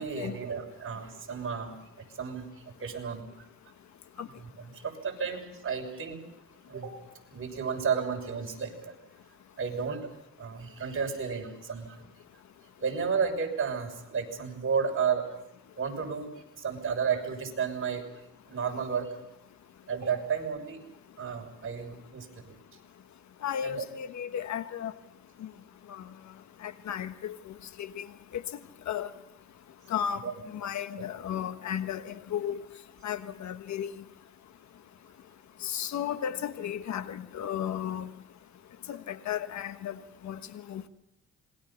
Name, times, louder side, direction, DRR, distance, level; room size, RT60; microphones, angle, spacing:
voice 1, 0.0-1.8 2.2-3.4 4.4-6.2 6.7-6.9 7.3-8.9 9.6-10.1 10.4-12.1 12.8-15.3 15.8-18.0 18.5-19.2 19.9-20.8 21.2-22.6 23.6-23.8 30.2-30.3, right 6 dB, 45° right, 6.5 m, -32 dB
voice 2, 23.4-24.9 25.4-25.5 25.9-26.0 26.6-28.1 28.3-28.4 28.9-29.1 29.9-32.6 33.0-33.9 35.6-38.1 38.9-40.0 40.2-40.4 40.7-40.9, left 9 dB, 65° left, 1.3 m, -34 dB
27.0 x 21.5 x 5.8 m
cardioid pair, 90°, 30 cm